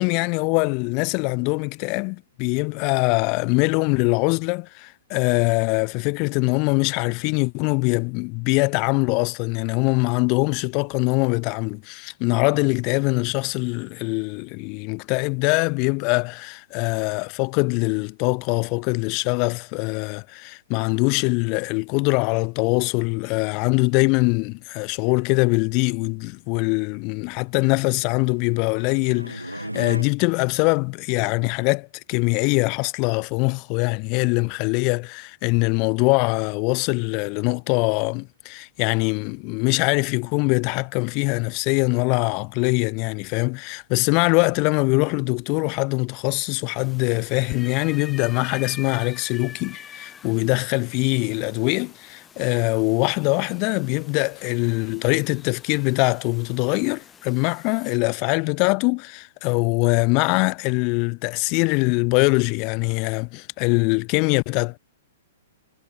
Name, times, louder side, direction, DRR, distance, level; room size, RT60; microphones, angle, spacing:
voice 1, 0.0-64.8, left 33 dB, 35° left, 1.1 m, -23 dB
sound 1, 28.1-30.0, right 1 dB, 90° right, 2.5 m, -36 dB
sound 2, 46.8-58.0, left 7 dB, 15° left, 3.7 m, -45 dB
figure-of-eight pair, 110°, 0 cm